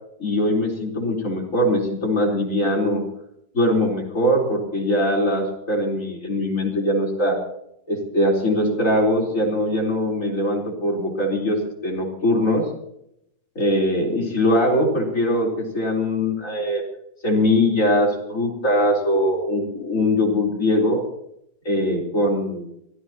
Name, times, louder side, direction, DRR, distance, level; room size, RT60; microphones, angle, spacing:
voice 1, 0.2-3.0 3.5-7.4 7.9-12.6 13.5-16.8 17.2-21.0 21.6-22.7, left 1 dB, 40° left, -2 dB, 4.6 m, -21 dB
24.0 x 15.5 x 3.0 m, 0.76 s
omnidirectional pair, 2.0 m